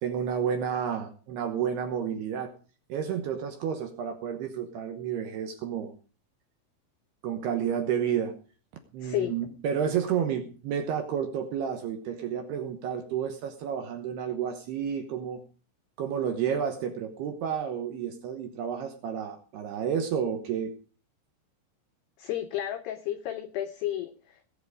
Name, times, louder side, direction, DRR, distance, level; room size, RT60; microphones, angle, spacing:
voice 1, 0.0-2.5 2.9-5.9 7.2-8.3 8.9-15.4 16.0-20.7, right 8 dB, 70° right, 6 dB, 2.5 m, -31 dB
voice 2, 9.0-9.3 22.2-24.5, left 12 dB, 85° left, 9 dB, 2.3 m, -32 dB
19.0 x 8.9 x 4.9 m, 0.38 s
omnidirectional pair, 5.9 m